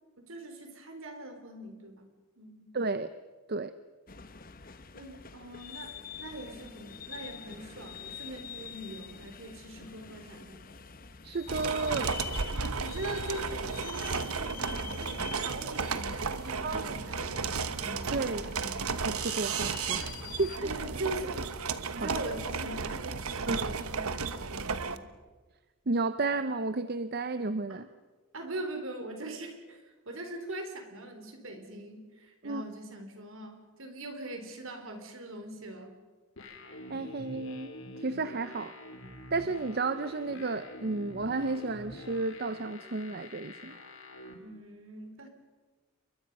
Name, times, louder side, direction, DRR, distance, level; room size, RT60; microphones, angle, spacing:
voice 1, 0.2-2.1 2.4-2.7 4.1-4.3 4.9-10.6 12.5-18.9 20.6-21.6 21.9-25.1 27.7-27.8 28.3-36.0 44.4-45.3, right 1 dB, 65° right, 5 dB, 4.0 m, -42 dB
voice 2, 2.7-3.1 3.5-3.7 11.2-12.2 16.6-17.0 18.1-18.5 19.0-20.5 22.0-22.1 23.5-23.8 25.9-27.9 32.4-32.6 36.9-38.8 39.3-43.8, right 3 dB, 45° right, 12 dB, 0.7 m, -32 dB
sound 1, 4.1-20.6, left 7 dB, 40° left, 1.1 m, -46 dB
sound 2, 11.5-25.0, right 5 dB, 85° right, 1.1 m, -34 dB
sound 3, 36.4-44.3, left 1 dB, 65° left, 3.4 m, -46 dB
29.0 x 23.0 x 5.5 m, 1.3 s
head